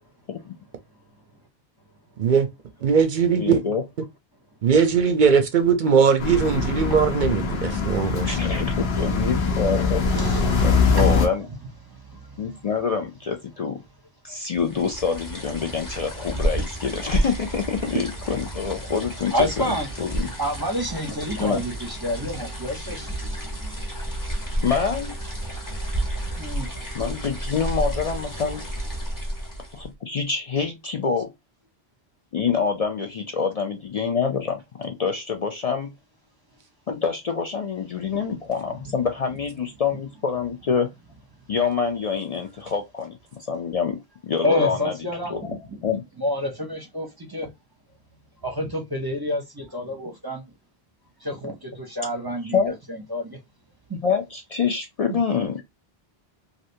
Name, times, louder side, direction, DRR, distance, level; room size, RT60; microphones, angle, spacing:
voice 1, 2.8-3.6 4.6-8.4, right 6 dB, 55° right, 0.6 m, -20 dB
voice 2, 3.4-3.8 8.3-11.5 12.4-13.8 14.2-20.3 21.4-21.6 24.6-25.2 26.9-28.7 29.7-31.3 32.3-35.9 36.9-40.9 41.5-45.0 45.3-45.6 45.8-46.0 52.4-52.8 54.0-55.6, left 6 dB, 55° left, 0.4 m, -26 dB
sound 1, 6.2-11.3, left 4 dB, 70° left, 1.0 m, -22 dB
voice 3, 8.2-8.5 10.1-11.1 11.9-12.4 19.3-19.9 20.4-23.1 26.4-26.7 44.4-45.5 46.2-47.5 48.4-50.4 51.2-53.4 53.9-54.0 55.1-55.2, left 1 dB, 25° right, 0.7 m, -28 dB
sound 2, 14.5-29.9, right 1 dB, 20° left, 1.0 m, -31 dB
3.2 x 2.6 x 2.6 m
omnidirectional pair, 1.1 m